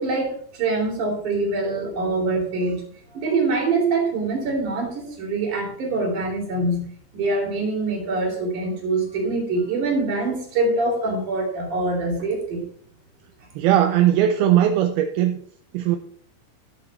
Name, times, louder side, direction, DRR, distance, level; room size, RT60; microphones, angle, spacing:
voice 1, 0.0-2.8 3.1-6.9 7.1-12.7, right 3 dB, 50° right, 4.4 m, -24 dB
voice 2, 13.6-15.4 15.7-16.0, right 11 dB, 75° right, 2.5 m, -19 dB
13.5 x 7.5 x 4.2 m
omnidirectional pair, 4.9 m